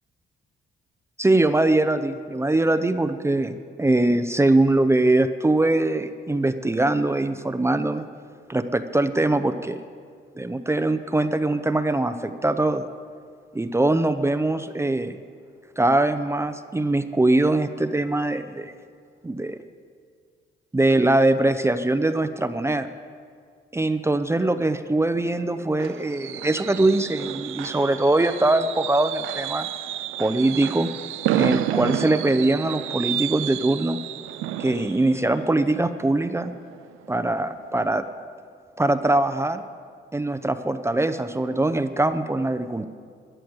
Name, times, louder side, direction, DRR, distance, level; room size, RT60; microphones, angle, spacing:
voice 1, 1.2-8.0 8.5-9.8 10.4-12.8 13.5-15.2 15.8-18.7 19.2-19.6 20.7-22.9 23.7-29.7 30.2-30.9 31.3-34.0 34.6-36.5 37.1-38.0 38.8-39.6 40.1-42.9, right 2 dB, 15° right, 10 dB, 0.6 m, -22 dB
Fireworks, 25.1-36.8 37.2-37.5 37.8-37.9, right 13 dB, 90° right, 0.5 m, -31 dB
13.5 x 10.0 x 7.9 m, 2.1 s
cardioid pair, 90°, 20 cm